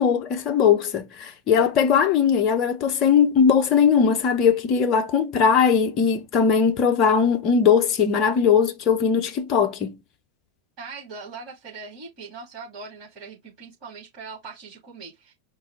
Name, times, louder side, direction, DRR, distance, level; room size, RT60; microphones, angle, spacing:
voice 1, 0.0-10.0, left 6 dB, 35° left, 0.8 m, -20 dB
voice 2, 10.8-15.3, right 4 dB, 35° right, 3.2 m, -40 dB
5.0 x 2.2 x 4.0 m
figure-of-eight pair, 90°, 0 cm